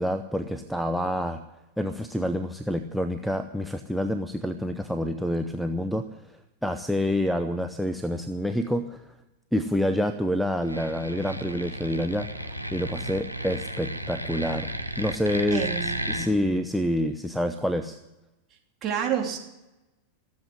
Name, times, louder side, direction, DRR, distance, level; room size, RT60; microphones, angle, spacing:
voice 1, 0.0-1.4 1.8-6.0 6.6-9.0 9.5-14.7 15.0-18.0, equal, ahead, 9 dB, 0.7 m, -27 dB
sound 1, 10.6-16.3, equal, 90° right, 1.1 m, -33 dB
voice 2, 15.5-16.3 18.8-19.4, right 8 dB, 30° right, 1 dB, 3.2 m, -29 dB
16.0 x 8.0 x 10.0 m, 0.98 s
figure-of-eight pair, 90°, 0 cm